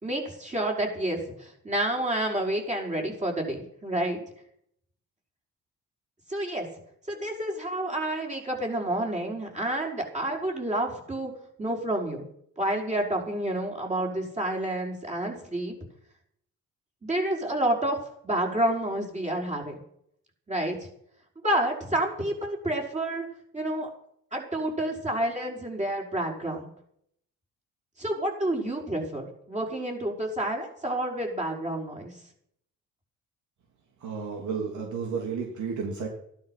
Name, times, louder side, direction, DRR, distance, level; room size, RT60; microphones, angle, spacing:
voice 1, 0.0-4.2 6.3-6.7 7.1-11.3 11.6-12.2 12.6-15.8 17.0-18.0 18.2-19.8 20.5-20.8 21.4-23.3 23.5-23.9 24.3-26.7 28.0-32.2, right 1 dB, 25° right, 0 dB, 5.8 m, -29 dB
voice 2, 34.0-36.1, right 5 dB, 75° right, 1 dB, 3.2 m, -32 dB
14.5 x 12.0 x 5.9 m, 0.70 s
cardioid pair, 90°, 30 cm